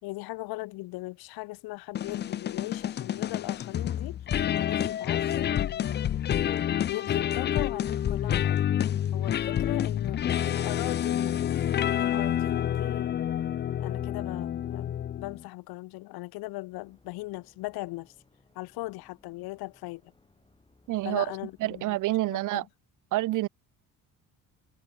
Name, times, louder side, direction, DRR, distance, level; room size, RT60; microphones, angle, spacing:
voice 1, 0.0-4.2 4.5-6.6 6.9-8.6 9.1-11.5 11.8-13.2 13.8-18.1 18.5-20.1 21.0-22.0 22.3-22.7, left 21 dB, 85° left, 1.5 m, -39 dB
sound 1, 1.9-15.4, left 10 dB, 30° left, 0.4 m, -28 dB
sound 2, 16.7-22.2, left 3 dB, 15° left, 6.4 m, -64 dB
voice 2, 20.9-21.3 21.6-22.6 23.1-23.5, right 17 dB, 60° right, 0.5 m, -27 dB
cardioid pair, 105°, 36 cm